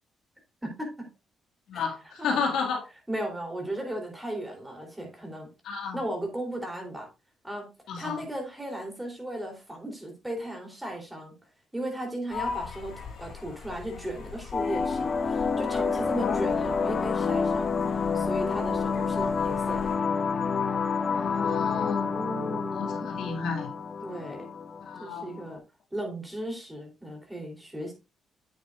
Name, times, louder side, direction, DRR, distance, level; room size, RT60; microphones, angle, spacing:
voice 1, 0.6-1.1 1.7-1.8 2.2-2.5 3.1-5.5 5.9-7.1 7.4-7.7 8.0-11.3 11.7-19.9 22.1-23.1 24.0-24.5 25.0-25.6 25.9-27.9, right 1 dB, 10° right, 2 dB, 3.3 m, -36 dB
voice 2, 1.7-2.8 5.7-6.0 7.9-8.2 16.2-16.5 21.1-22.1 22.7-23.7 24.8-25.3, left 5 dB, 75° left, 1 dB, 2.1 m, -32 dB
sound 1, 12.3-20.0, left 6 dB, 60° left, 4.4 m, -41 dB
sound 2, 14.5-25.5, left 5 dB, 40° left, 0.6 m, -28 dB
8.9 x 7.7 x 2.5 m, 0.28 s
cardioid pair, 90°, 0 cm